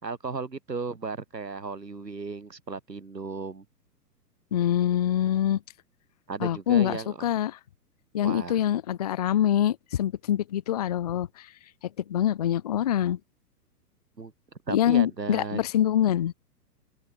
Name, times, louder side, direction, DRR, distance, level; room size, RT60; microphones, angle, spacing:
voice 1, 0.0-3.6 6.3-7.2 8.2-8.6 14.2-14.3 14.7-15.6, right 4 dB, 85° right, 4.8 m, -35 dB
voice 2, 4.5-5.6 6.4-7.6 8.1-11.5 12.0-13.2 14.7-16.3, left 11 dB, 30° left, 0.4 m, -25 dB
open air
figure-of-eight pair, 115°, 48 cm